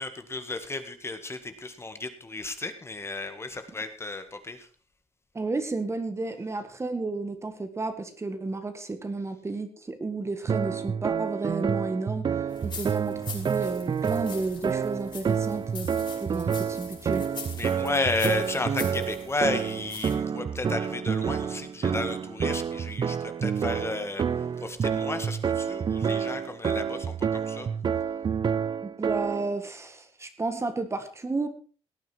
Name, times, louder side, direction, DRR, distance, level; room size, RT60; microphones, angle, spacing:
voice 1, 0.0-4.7 17.6-27.7, left 3 dB, 25° left, 8 dB, 1.8 m, -33 dB
voice 2, 5.3-15.9 16.2-17.2 28.8-31.5, right 3 dB, 25° right, 9 dB, 1.8 m, -32 dB
sound 1, 10.5-29.5, right 7 dB, 45° right, 0.6 m, -29 dB
sound 2, 12.5-20.2, left 5 dB, 45° left, 5.7 m, -43 dB
17.5 x 9.3 x 4.6 m, 0.38 s
cardioid pair, 95°, 11 cm